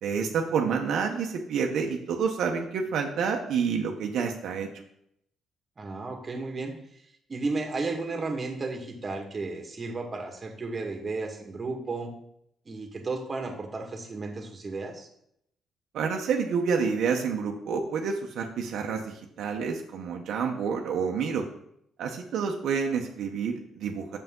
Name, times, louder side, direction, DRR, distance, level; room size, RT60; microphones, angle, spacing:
voice 1, 0.0-4.7 15.9-21.4 22.0-24.2, right 6 dB, 75° right, 2 dB, 1.0 m, -28 dB
voice 2, 5.8-6.8 7.3-12.1 12.6-15.1, right 3 dB, 35° right, 3 dB, 1.7 m, -33 dB
8.0 x 6.7 x 3.8 m, 0.74 s
cardioid pair, 90°, 0 cm